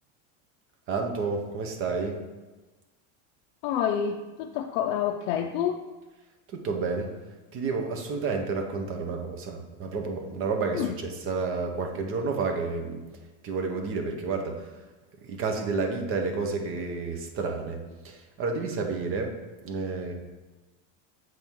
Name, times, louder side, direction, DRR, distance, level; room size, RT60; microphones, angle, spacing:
voice 1, 0.9-2.1 6.6-7.1 7.5-13.0 13.4-14.5 15.2-17.8 18.0-19.3 19.6-20.1, right 4 dB, 35° right, 4 dB, 0.8 m, -30 dB
voice 2, 3.6-5.8 10.7-11.0, left 9 dB, 60° left, 3 dB, 0.5 m, -28 dB
7.7 x 4.4 x 3.6 m, 1.2 s
cardioid pair, 170°, 39 cm